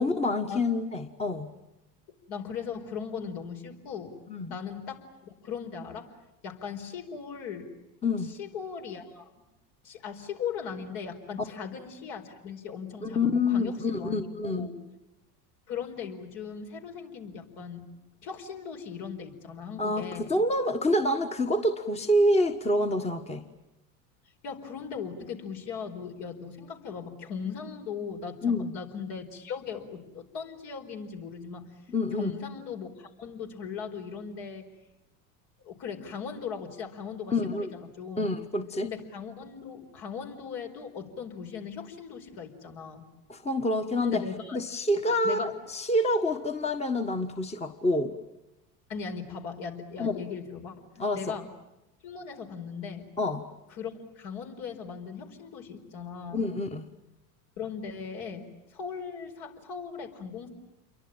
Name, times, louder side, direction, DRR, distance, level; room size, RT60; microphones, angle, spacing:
voice 1, 0.0-1.5 4.3-4.6 8.0-8.3 13.0-14.7 19.8-23.4 28.4-28.7 31.9-32.3 37.3-37.7 38.2-38.9 43.3-44.2 44.5-48.1 50.0-50.2 51.0-51.3 53.2-53.5 56.3-56.9, left 1 dB, 15° left, 7 dB, 1.5 m, -27 dB
voice 2, 2.3-4.1 4.5-6.2 6.4-7.7 8.2-9.3 9.8-14.7 15.7-17.9 18.2-20.3 24.4-31.7 32.1-34.7 35.6-38.3 38.8-43.1 44.0-44.6 45.2-45.5 48.9-50.9 51.1-51.5 52.0-53.1 53.7-56.5 57.6-60.5, left 6 dB, 60° left, 4 dB, 4.9 m, -38 dB
28.5 x 23.0 x 8.9 m, 0.96 s
hypercardioid pair, 95°, 48 cm